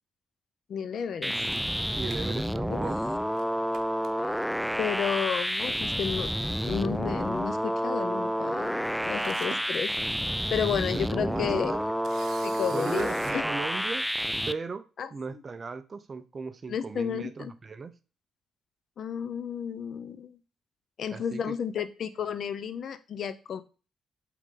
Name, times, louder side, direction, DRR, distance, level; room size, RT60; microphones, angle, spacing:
voice 1, 0.7-1.4 2.7-2.8 4.8-6.3 6.6-9.9 10.5-11.8 12.4-13.4 15.0-15.4 16.7-17.5 19.0-20.4 21.0-23.6, left 7 dB, 60° left, 0.8 m, -32 dB
sound 1, 1.2-14.5, equal, ahead, 0.4 m, -29 dB
voice 2, 1.2-3.1 11.0-11.8 12.7-14.1 14.5-17.9 21.1-21.6, right 4 dB, 35° right, 0.7 m, -37 dB
Camera, 1.5-3.0 3.3-3.4 3.7-4.6 5.5-5.8 6.1-6.2 8.6-8.7 9.0-9.8 10.3-10.5 12.0-13.4, right 7 dB, 75° right, 0.9 m, -45 dB
8.3 x 4.0 x 3.8 m
cardioid pair, 95°, 0 cm